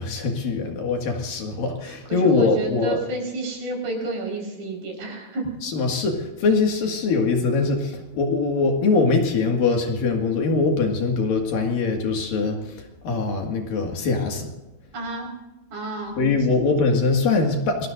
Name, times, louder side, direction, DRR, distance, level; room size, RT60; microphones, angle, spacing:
voice 1, 0.0-3.0 5.6-14.5 16.2-17.9, left 4 dB, 65° left, 2 dB, 3.5 m, -22 dB
voice 2, 1.8-5.5 14.9-15.3 15.7-16.2 16.5-16.6, right 2 dB, 65° right, 1 dB, 6.6 m, -30 dB
28.0 x 20.0 x 2.6 m, 1.1 s
omnidirectional pair, 4.7 m